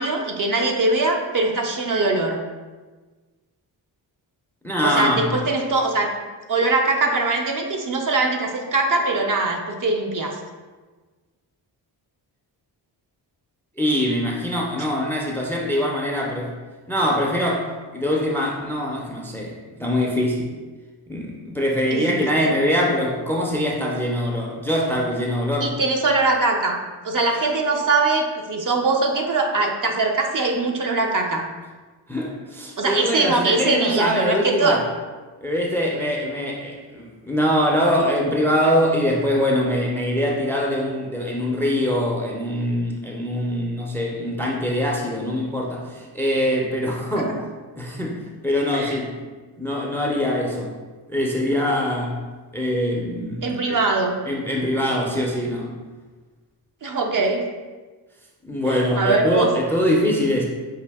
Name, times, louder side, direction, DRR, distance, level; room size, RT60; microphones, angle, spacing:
voice 1, 0.0-2.4 4.8-6.1 6.5-10.4 14.8-14.9 21.9-22.5 25.6-26.8 27.0-31.5 32.8-34.8 47.2-47.3 48.7-49.0 53.4-54.2 56.8-57.4 58.7-59.5, right 3 dB, 45° right, 2 dB, 0.5 m, -22 dB
voice 2, 4.6-5.4 13.8-16.5 16.9-20.5 21.1-25.7 32.1-34.8 35.4-47.3 47.8-49.1 49.6-50.7 51.1-52.2 52.5-53.8 54.3-55.7 58.4-60.4, equal, 5° left, -1 dB, 0.4 m, -23 dB
4.8 x 2.6 x 3.4 m, 1.3 s
wide cardioid pair, 120°, 45 cm